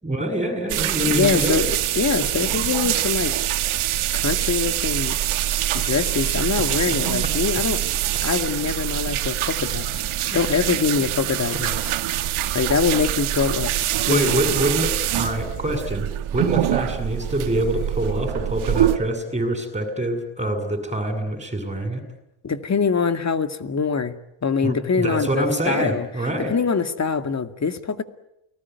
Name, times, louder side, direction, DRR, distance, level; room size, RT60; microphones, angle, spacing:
voice 1, 0.0-1.6 5.7-5.9 10.2-10.4 14.1-16.1 16.3-22.0 24.6-26.5, right 1 dB, 15° right, 7 dB, 7.9 m, -25 dB
sound 1, 0.7-19.0, right 12 dB, 80° right, 1.9 m, -24 dB
voice 2, 1.1-1.7 2.0-3.3 4.1-5.2 5.7-7.8 8.2-10.0 10.3-11.8 12.5-13.7 14.0-14.6 22.4-24.2 24.4-26.1 26.5-28.0, left 5 dB, 35° left, 9 dB, 2.3 m, -23 dB
29.5 x 20.0 x 9.6 m, 0.85 s
cardioid pair, 95°, 49 cm